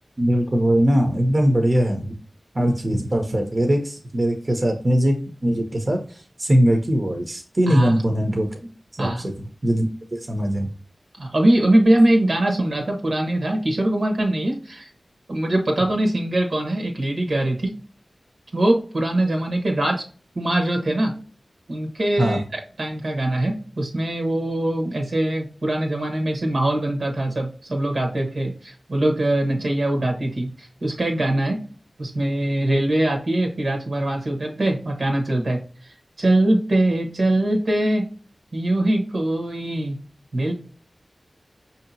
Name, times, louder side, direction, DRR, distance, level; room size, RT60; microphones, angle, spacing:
voice 1, 0.2-2.2 2.5-5.2 5.4-8.5 9.0-9.3 9.6-10.7 22.2-22.4, equal, 45° right, 3 dB, 0.7 m, -21 dB
voice 2, 11.2-14.9 15.3-17.7 18.5-20.1 20.3-21.1 21.7-31.6 32.0-38.1 38.5-40.0 40.3-40.5, right 1 dB, 75° right, 3 dB, 1.1 m, -22 dB
5.1 x 2.8 x 2.7 m, 0.40 s
cardioid pair, 45°, 0 cm